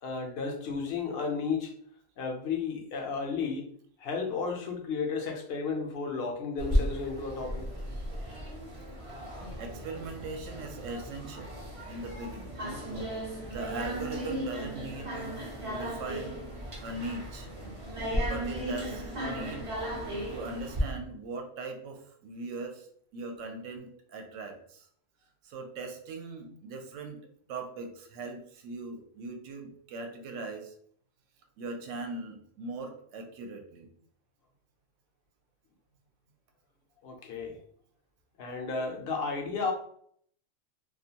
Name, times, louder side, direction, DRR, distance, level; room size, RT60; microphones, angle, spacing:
voice 1, 0.0-1.7 2.2-3.7 4.0-7.7 37.0-37.6 38.4-39.7, left 5 dB, 60° left, 2 dB, 0.7 m, -33 dB
sound 1, 6.6-20.8, equal, 40° right, 0.5 m, -35 dB
voice 2, 9.6-11.6 11.9-12.6 13.4-16.4 16.8-17.5 18.2-19.7 20.3-22.9 23.1-24.9 25.4-27.2 27.5-30.7 31.6-33.9, right 3 dB, 75° right, 4 dB, 0.9 m, -40 dB
2.4 x 2.2 x 2.7 m, 0.62 s
omnidirectional pair, 1.4 m